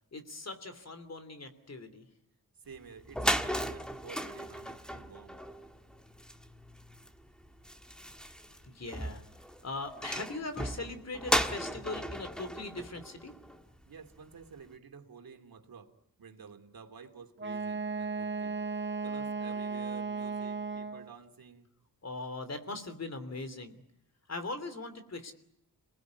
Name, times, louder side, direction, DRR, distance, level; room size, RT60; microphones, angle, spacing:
voice 1, 0.1-2.0 8.6-9.2 9.6-13.3 22.0-23.8 24.3-25.3, left 2 dB, 45° left, 10 dB, 3.1 m, -40 dB
voice 2, 2.6-5.4 13.9-15.9 16.2-18.6 19.0-21.7, right 6 dB, 75° right, 5 dB, 2.8 m, -51 dB
sound 1, 2.8-2.9 3.0-13.8, equal, ahead, 1.6 m, -36 dB
Wind instrument woodwind instrument, 17.4-21.1, right 4 dB, 30° right, 1.1 m, -35 dB
28.0 x 19.0 x 9.5 m, 0.76 s
wide cardioid pair, 125°, 36 cm